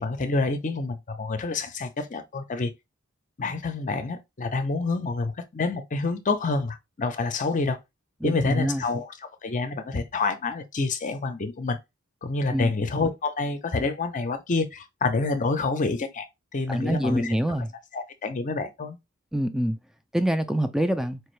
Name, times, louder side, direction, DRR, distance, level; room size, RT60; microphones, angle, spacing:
voice 1, 0.0-2.7 3.4-7.8 8.2-9.1 9.4-11.8 12.2-16.3 16.5-17.4 17.9-19.0, left 3 dB, 40° left, 0.6 m, -28 dB
voice 2, 8.2-8.8 12.5-12.7 16.7-17.7 19.3-19.8 20.1-21.2, equal, ahead, 0.4 m, -25 dB
4.6 x 2.6 x 3.1 m
head